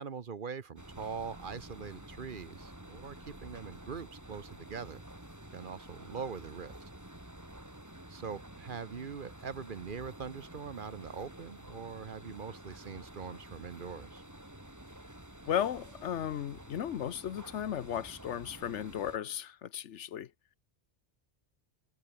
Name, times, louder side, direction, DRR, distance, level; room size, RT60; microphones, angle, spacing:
voice 1, 0.0-5.0 5.5-6.7 8.1-14.2, right 6 dB, 50° right, 1.1 m, -42 dB
sound 1, 0.8-19.2, right 1 dB, 15° right, 2.9 m, -50 dB
voice 2, 15.5-20.3, left 9 dB, 85° left, 1.2 m, -35 dB
omnidirectional pair, 1.2 m